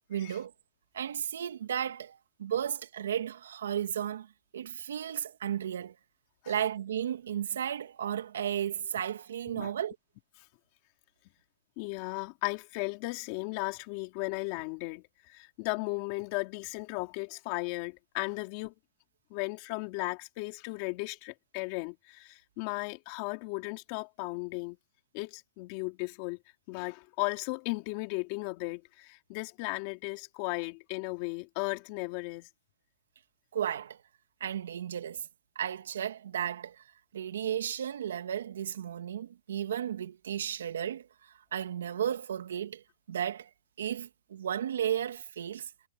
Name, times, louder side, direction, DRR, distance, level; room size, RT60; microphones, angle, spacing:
voice 1, 0.1-0.5 0.9-4.3 4.5-6.0 6.5-10.0 33.5-34.0 34.4-35.3 35.6-36.8 37.1-41.1 41.5-42.8 43.1-43.5 43.8-45.7, right 9 dB, 75° right, 2.7 m, -34 dB
voice 2, 11.8-18.7 19.3-24.8 25.1-26.4 26.7-32.5, left 25 dB, 30° left, 3.5 m, -36 dB
hypercardioid pair, 175°, 0 cm